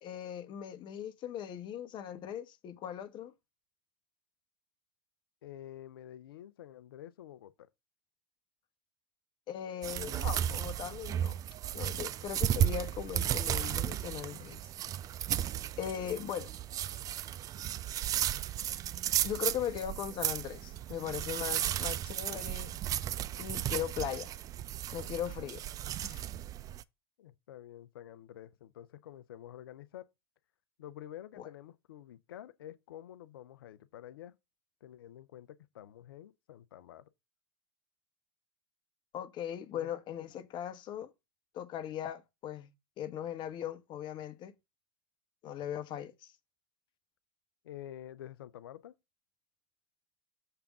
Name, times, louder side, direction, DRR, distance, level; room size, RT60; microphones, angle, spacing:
voice 1, 0.0-3.3 9.5-11.4 11.7-14.7 15.8-16.5 19.2-22.7 23.4-24.3 24.9-25.6 26.0-26.3 31.4-31.5 39.1-41.1 41.5-42.7 43.0-44.5 45.4-46.3, left 10 dB, 35° left, 1.0 m, -39 dB
voice 2, 5.4-7.7 25.4-25.5 27.2-30.1 30.8-34.3 34.8-37.0 39.7-39.9 47.6-48.9, left 11 dB, 65° left, 0.6 m, -49 dB
sound 1, 9.8-26.8, right 11 dB, 25° right, 0.4 m, -34 dB
6.8 x 3.5 x 6.0 m
figure-of-eight pair, 85°, 13 cm